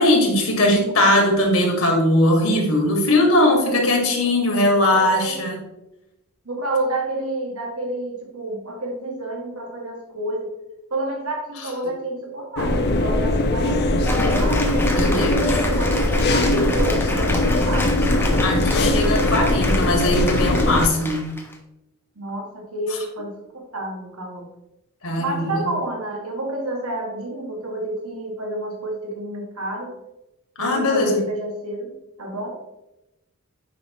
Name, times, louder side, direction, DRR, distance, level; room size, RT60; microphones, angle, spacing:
voice 1, 0.0-5.6 14.9-15.7 18.4-21.2 25.0-25.7 30.6-31.2, left 1 dB, 70° left, 1 dB, 2.1 m, -20 dB
voice 2, 3.4-3.9 4.9-5.4 6.5-10.5 10.9-15.2 15.6-18.5 22.2-24.5 25.2-29.9 30.6-32.5, right 1 dB, 70° right, 1 dB, 1.7 m, -29 dB
sound 1, 12.6-20.9, left 1 dB, 50° left, 0.7 m, -20 dB
Cheering / Applause, 14.0-21.5, left 2 dB, 10° left, 1.1 m, -30 dB
9.7 x 5.5 x 3.1 m, 0.92 s
head